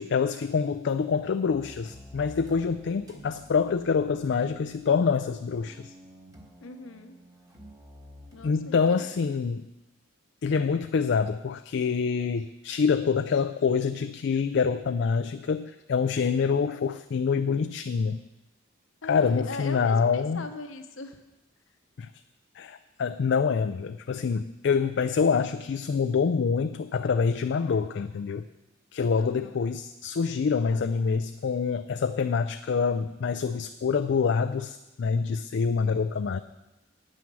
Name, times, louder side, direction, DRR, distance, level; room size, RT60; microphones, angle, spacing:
voice 1, 0.0-5.9 8.4-9.7 10.4-18.2 19.0-20.5 22.0-22.1 22.6-28.4 28.9-36.4, left 5 dB, 60° left, 9 dB, 0.4 m, -26 dB
sound 1, 1.4-8.5, equal, 20° right, 1.3 m, -50 dB
voice 2, 6.6-7.2 8.3-9.4 19.0-21.2 29.2-29.6, left 3 dB, 75° left, 7 dB, 1.0 m, -40 dB
9.2 x 8.6 x 6.1 m, 1.0 s
head